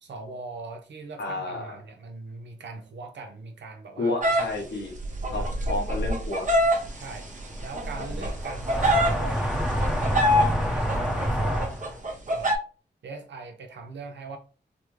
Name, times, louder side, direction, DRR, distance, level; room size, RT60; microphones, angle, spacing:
voice 1, 0.0-4.4 5.3-5.5 7.0-7.3 7.6-9.5 9.9-11.9 12.3-12.6 13.0-14.4, right 3 dB, 85° right, 0.6 m, -40 dB
voice 2, 1.2-1.8 4.0-4.9 5.3-5.4 5.7-6.5, left 2 dB, 80° left, 1.1 m, -30 dB
sound 1, 4.2-9.2 9.6-10.5 10.9-11.3 11.6-12.6, equal, 45° right, 0.8 m, -25 dB
sound 2, 6.7-7.1 7.5-12.0, equal, 5° right, 0.8 m, -27 dB
3.3 x 2.1 x 3.1 m
cardioid pair, 45°, 18 cm